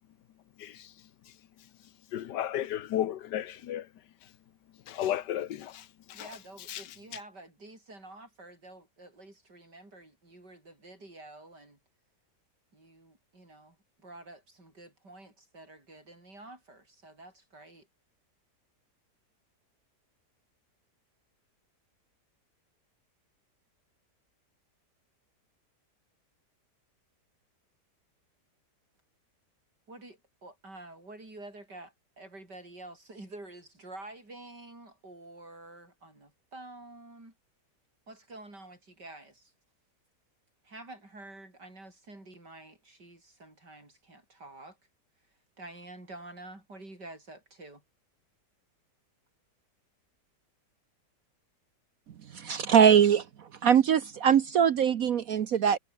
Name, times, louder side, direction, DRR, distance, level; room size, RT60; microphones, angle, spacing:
voice 1, 2.1-3.9 4.9-6.3 6.7-6.8, left 11 dB, 85° left, 1.6 m, -33 dB
voice 2, 6.1-11.8 12.7-17.9 29.9-37.3 38.1-39.5 40.6-44.8 45.6-47.8, right 2 dB, 80° right, 8.6 m, -49 dB
voice 3, 52.3-55.8, right 8 dB, 60° right, 1.2 m, -22 dB
omnidirectional pair, 1.8 m